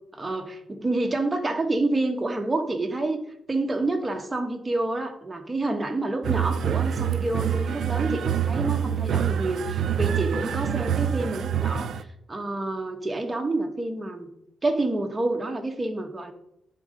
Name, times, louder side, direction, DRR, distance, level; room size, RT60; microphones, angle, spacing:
voice 1, 0.1-3.2 3.5-11.9 12.3-14.3 14.6-16.3, right 2 dB, 20° right, 4 dB, 1.0 m, -28 dB
sound 1, 6.2-12.0, right 9 dB, 70° right, 0.4 m, -26 dB
10.5 x 3.7 x 5.1 m, 0.79 s
cardioid pair, 125°, 0 cm